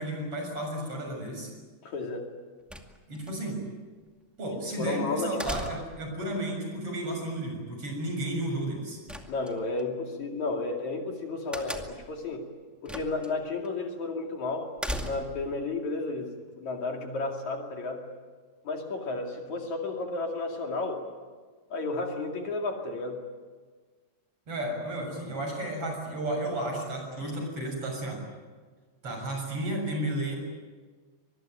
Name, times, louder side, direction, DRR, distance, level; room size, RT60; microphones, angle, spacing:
voice 1, 0.0-1.5 3.1-3.7 4.4-9.0 24.5-28.2 29.0-30.4, right 1 dB, 40° right, 2 dB, 7.9 m, -33 dB
voice 2, 1.8-2.3 4.8-5.3 9.3-12.5 12.8-18.1 18.7-21.0 21.7-23.2, left 3 dB, 60° left, 2 dB, 3.8 m, -32 dB
sound 1, 2.7-3.3 5.4-6.1 9.1-9.8 11.5-12.1 12.9-13.3 13.6-13.7 14.8-15.5, equal, ahead, 1.2 m, -37 dB
25.0 x 22.5 x 9.1 m, 1.4 s
omnidirectional pair, 3.8 m